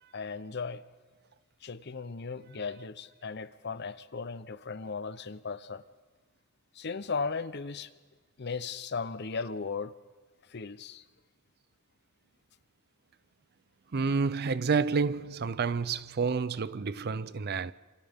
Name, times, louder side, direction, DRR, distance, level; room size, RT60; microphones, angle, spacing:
voice 1, 0.1-0.8 1.6-5.8 6.8-7.9 8.4-9.9 10.5-11.0, left 4 dB, 55° left, 0.8 m, -36 dB
voice 2, 13.9-17.7, right 5 dB, 50° right, 0.5 m, -29 dB
28.0 x 26.5 x 3.6 m
head